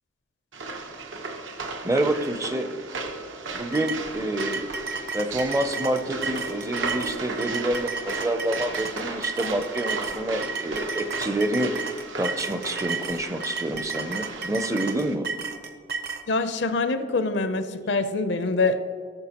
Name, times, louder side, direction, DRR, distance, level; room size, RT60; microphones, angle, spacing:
sound 1, 0.5-15.1, right 3 dB, 85° right, 0.9 m, -36 dB
voice 1, 1.8-2.7 3.5-4.7 5.1-11.7 12.2-15.3, right 1 dB, 15° right, 8 dB, 0.5 m, -27 dB
sound 2, 3.7-16.2, right 4 dB, 55° right, 0.7 m, -33 dB
voice 2, 16.3-18.8, left 3 dB, 65° left, 10 dB, 0.6 m, -25 dB
13.5 x 6.5 x 2.9 m, 2.1 s
head